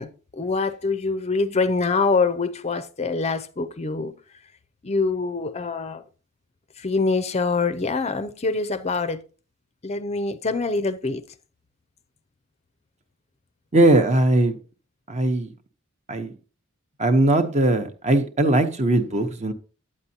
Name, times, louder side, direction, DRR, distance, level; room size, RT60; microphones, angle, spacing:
voice 1, 0.0-4.2 4.8-6.0 6.8-9.2 9.8-11.2, left 4 dB, 30° left, 0.5 m, -25 dB
voice 2, 13.7-14.6 15.1-15.5 16.1-16.3 17.0-19.5, right 2 dB, 30° right, 0.9 m, -19 dB
9.6 x 8.5 x 2.8 m
head